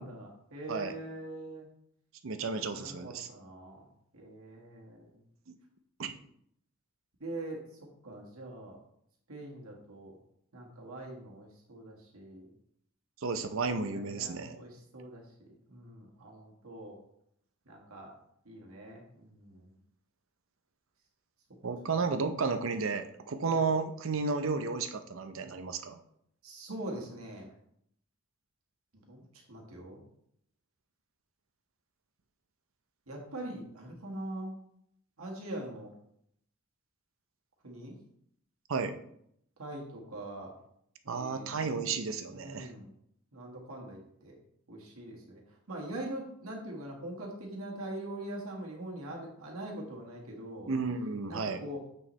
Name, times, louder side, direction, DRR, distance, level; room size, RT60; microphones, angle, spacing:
voice 1, 0.0-1.7 2.4-3.8 4.1-5.2 7.2-7.6 8.0-8.8 9.3-10.2 10.5-12.5 13.9-17.0 17.6-18.1 18.4-19.7 23.3-23.6 26.4-27.5 29.1-30.0 33.1-34.5 35.2-35.9 37.6-38.0 39.6-40.5 41.0-41.5 41.7-41.9 42.3-42.9 43.3-44.4 44.7-50.7 51.3-51.9, right 1 dB, 80° right, -1 dB, 1.7 m, -43 dB
voice 2, 2.2-3.3 6.0-6.1 13.2-14.6 21.6-26.0 38.7-39.0 41.1-42.7 50.7-51.6, right 4 dB, 65° right, 8 dB, 0.6 m, -32 dB
8.8 x 4.7 x 3.2 m, 0.71 s
head